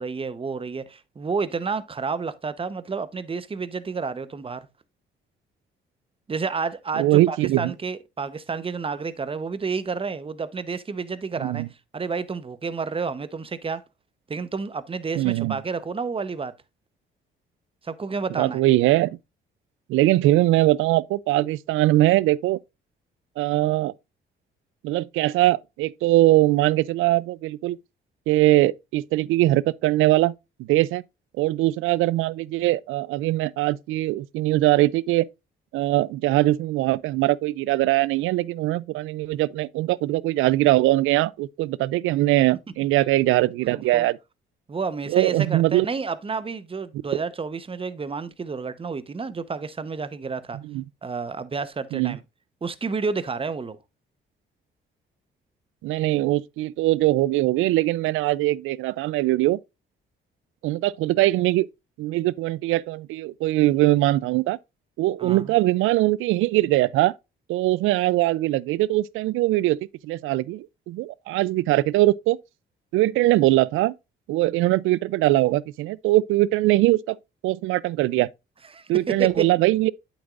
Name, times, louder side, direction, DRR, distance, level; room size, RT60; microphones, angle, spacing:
voice 1, 0.0-4.7 6.3-11.6 11.9-13.8 14.3-16.5 17.8-18.6 43.7-44.1 44.7-50.6 51.0-52.2 52.6-53.8 65.2-65.5 78.7-79.5, right 5 dB, 25° right, 0.9 m, -30 dB
voice 2, 7.0-7.7 11.4-11.7 15.2-15.6 18.4-19.2 19.9-22.6 23.4-23.9 24.8-27.8 28.3-30.3 30.6-31.0 31.4-35.3 35.7-44.2 45.1-45.9 50.6-50.8 51.9-52.2 55.8-59.6 60.6-61.7 62.0-64.6 65.0-67.1 67.5-72.4 72.9-73.9 74.3-77.2 77.4-78.3 78.9-79.9, right 17 dB, 90° right, 0.4 m, -21 dB
8.7 x 7.2 x 2.5 m
cardioid pair, 90°, 20 cm